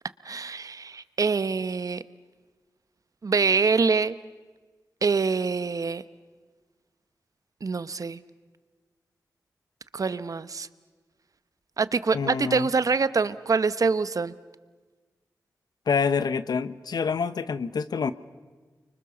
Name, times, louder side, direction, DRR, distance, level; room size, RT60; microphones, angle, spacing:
voice 1, 0.2-2.0 3.2-4.1 5.0-6.0 7.6-8.2 9.9-10.7 11.8-14.3, right 4 dB, 60° right, 14 dB, 1.0 m, -25 dB
voice 2, 12.1-12.7 15.9-18.1, left 5 dB, 80° left, 14 dB, 1.0 m, -27 dB
30.0 x 24.5 x 7.0 m, 1.4 s
cardioid pair, 60°, 7 cm